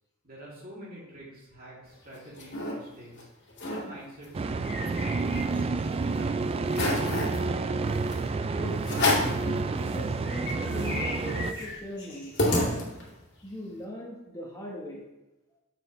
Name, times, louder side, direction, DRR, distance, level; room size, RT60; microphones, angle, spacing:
voice 1, 0.2-3.3 3.7-7.2, equal, 45° right, -5 dB, 2.9 m, -46 dB
sound 1, 1.9-2.7 3.2-3.3 3.5-3.8 4.2-5.8 6.2-6.3 6.7-7.4 8.1-8.2 8.8-9.4 9.9-10.0 10.2-13.2, left 2 dB, 55° left, 2.1 m, -30 dB
sound 2, 4.3-11.5, right 3 dB, 30° right, 0.3 m, -29 dB
sound 3, 7.8-8.3 8.7-9.3 9.7-10.2 10.6-11.9 12.3-13.0, right 2 dB, 60° right, 1.2 m, -49 dB
voice 2, 8.6-13.0 13.4-15.0, equal, 15° left, -3 dB, 1.2 m, -39 dB
7.8 x 7.3 x 3.2 m, 1.0 s
head